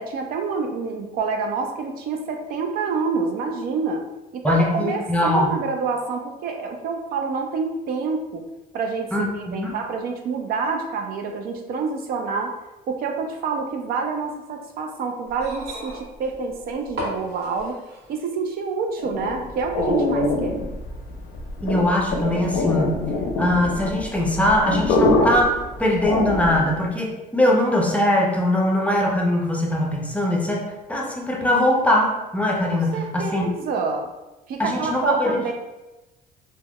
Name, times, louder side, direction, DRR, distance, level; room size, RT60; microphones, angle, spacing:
voice 1, 0.0-4.0 4.3-8.5 8.7-12.5 12.9-17.8 18.1-20.6 32.9-34.1 34.5-35.5, right 4 dB, 65° right, 4 dB, 0.4 m, -27 dB
voice 2, 4.4-5.6 9.1-9.8 21.6-23.0 23.4-25.5 25.8-30.6 30.9-33.5 34.6-35.4, left 1 dB, 10° left, -1 dB, 0.5 m, -21 dB
sound 1, 15.3-18.2 19.3-19.4, equal, 80° right, 1.0 m, -35 dB
sound 2, 19.0-26.8, left 2 dB, 80° left, 0.5 m, -24 dB
3.2 x 2.1 x 2.2 m, 1.0 s
cardioid pair, 110°, 17 cm